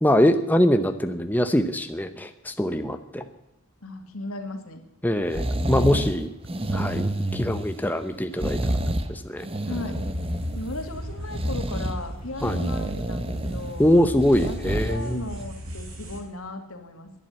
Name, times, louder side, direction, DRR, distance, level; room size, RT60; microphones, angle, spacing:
voice 1, 0.0-3.2 5.0-6.3 6.7-8.7 9.1-9.5 12.4-12.6 13.8-15.2, equal, 10° left, 8 dB, 0.7 m, -23 dB
voice 2, 3.8-4.8 9.6-10.0 10.5-13.9 14.4-17.1, left 2 dB, 90° left, 6 dB, 2.4 m, -36 dB
sound 1, 5.3-6.1 6.4-7.9 8.4-9.1 9.4-10.7 11.3-11.9 12.4-13.7 14.2-15.0 15.4-15.5, right 1 dB, 25° right, 1.1 m, -28 dB
sound 2, 9.9-16.2, equal, 90° right, 3.7 m, -36 dB
12.0 x 11.0 x 9.9 m, 0.85 s
head